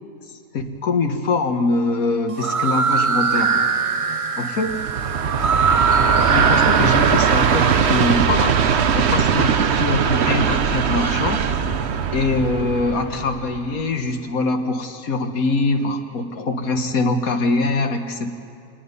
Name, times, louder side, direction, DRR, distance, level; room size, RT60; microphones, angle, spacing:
voice 1, 0.5-3.6 4.4-4.8 6.0-8.6 8.9-11.5 12.1-18.3, left 3 dB, 80° left, 5 dB, 1.8 m, -23 dB
sound 1, 2.3-8.1, right 5 dB, 40° right, 0.5 m, -22 dB
Train, 4.7-13.9, right 7 dB, 55° right, 1.0 m, -20 dB
26.0 x 19.5 x 5.5 m, 2.5 s
omnidirectional pair, 1.5 m